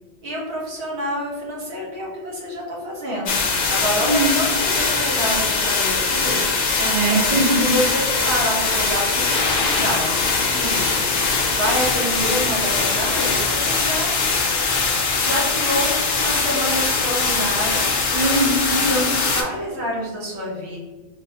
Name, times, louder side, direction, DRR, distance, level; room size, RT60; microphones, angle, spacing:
voice 1, 0.2-6.4 7.6-8.0 8.3-10.9 11.5-14.2 15.2-17.8 18.7-19.0 19.3-20.8, equal, 75° right, -3 dB, 1.2 m, -27 dB
sound 1, 3.3-19.4, left 4 dB, 60° left, 0.6 m, -21 dB
voice 2, 4.0-4.4 6.8-7.7 18.1-19.1, right 2 dB, 55° right, 1 dB, 0.5 m, -21 dB
3.4 x 2.0 x 2.7 m, 1.3 s
omnidirectional pair, 1.1 m